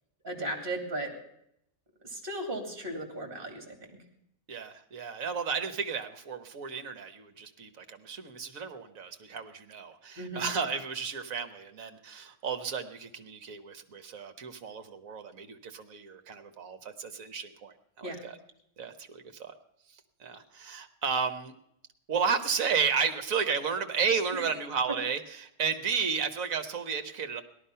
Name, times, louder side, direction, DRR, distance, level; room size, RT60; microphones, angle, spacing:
voice 1, 0.2-1.1 2.1-3.8 10.2-10.5 18.0-18.2, right 1 dB, 35° right, 3 dB, 2.8 m, -36 dB
voice 2, 4.5-18.4 18.8-19.5 20.2-21.5 22.1-27.4, right 6 dB, 60° right, 8 dB, 1.5 m, -33 dB
17.5 x 12.0 x 5.6 m, 0.77 s
omnidirectional pair, 1.6 m